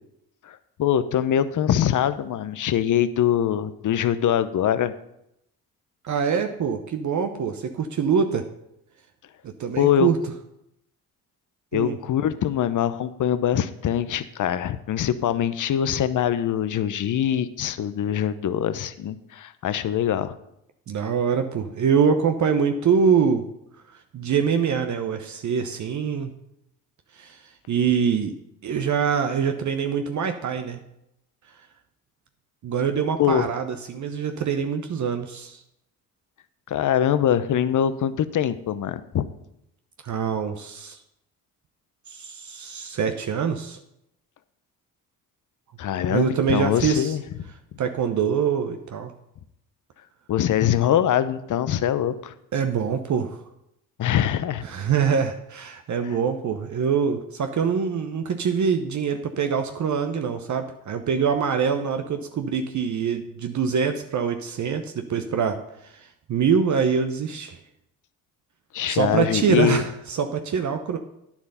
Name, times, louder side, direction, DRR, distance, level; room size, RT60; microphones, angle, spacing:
voice 1, 0.4-4.9 9.8-10.1 11.7-20.3 33.2-33.5 36.7-39.3 45.8-47.2 50.3-52.3 54.0-54.6 56.0-56.2 68.7-69.8, left 10 dB, 55° left, 13 dB, 0.8 m, -23 dB
voice 2, 6.0-8.5 9.6-10.2 11.7-12.0 20.9-23.4 24.1-26.3 27.1-27.4 27.7-28.3 28.6-30.8 32.6-35.6 40.0-41.0 42.1-43.8 46.1-47.1 47.8-49.1 52.5-53.4 54.6-65.6 65.8-67.6 68.9-71.0, right 6 dB, 50° right, 6 dB, 0.9 m, -24 dB
9.6 x 7.2 x 5.5 m, 0.81 s
supercardioid pair, 55°, 37 cm